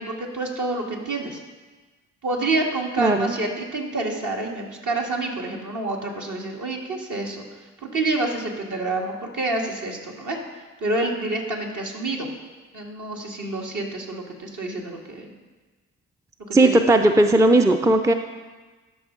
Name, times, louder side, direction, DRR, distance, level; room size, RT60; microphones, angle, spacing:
voice 1, 0.0-1.4 2.2-7.4 7.9-10.4 10.8-12.3 12.7-15.3 16.6-16.8, right 2 dB, 55° right, 0 dB, 1.8 m, -28 dB
voice 2, 3.0-3.3 16.5-18.1, right 2 dB, 10° right, 6 dB, 0.5 m, -17 dB
12.5 x 5.5 x 3.8 m, 1.3 s
hypercardioid pair, 45°, 36 cm